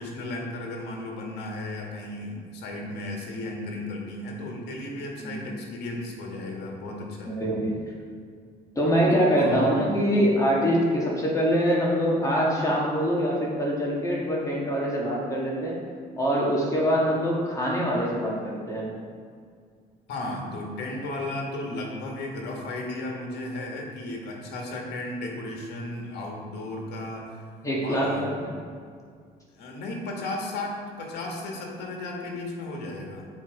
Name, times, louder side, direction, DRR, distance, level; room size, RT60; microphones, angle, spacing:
voice 1, 0.0-7.4 9.4-9.8 20.1-27.4 27.8-28.3 29.5-33.2, left 2 dB, 80° left, 0 dB, 1.7 m, -34 dB
voice 2, 7.3-7.8 8.7-15.7 16.2-18.9 27.6-28.5, equal, 20° left, -4 dB, 1.7 m, -24 dB
7.2 x 4.9 x 4.8 m, 2.1 s
cardioid pair, 110°, 17 cm